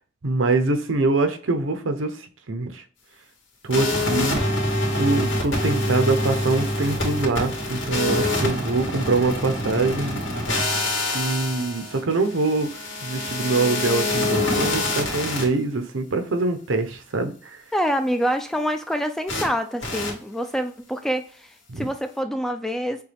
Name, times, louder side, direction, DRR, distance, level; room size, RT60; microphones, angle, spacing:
voice 1, 0.2-2.1 2.5-2.8 3.6-4.4 4.9-10.2 11.1-12.7 13.0-17.6 21.7-21.9, right 3 dB, 80° right, 7 dB, 0.7 m, -24 dB
sound 1, 3.7-15.4 19.3-19.5 19.8-20.1, left 2 dB, 75° left, 1.9 m, -25 dB
voice 2, 17.7-23.0, equal, ahead, 7 dB, 0.3 m, -26 dB
6.7 x 2.3 x 3.4 m, 0.41 s
head